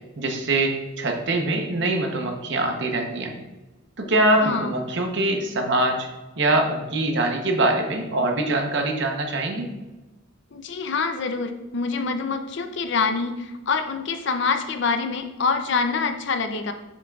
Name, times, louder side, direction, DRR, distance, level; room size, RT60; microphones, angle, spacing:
voice 1, 0.2-3.3 4.0-6.1 6.4-9.7, right 2 dB, 60° right, 3 dB, 0.9 m, -23 dB
voice 2, 4.4-4.7 10.5-16.7, left 4 dB, 60° left, 8 dB, 0.5 m, -25 dB
7.0 x 5.9 x 2.4 m, 1.1 s
head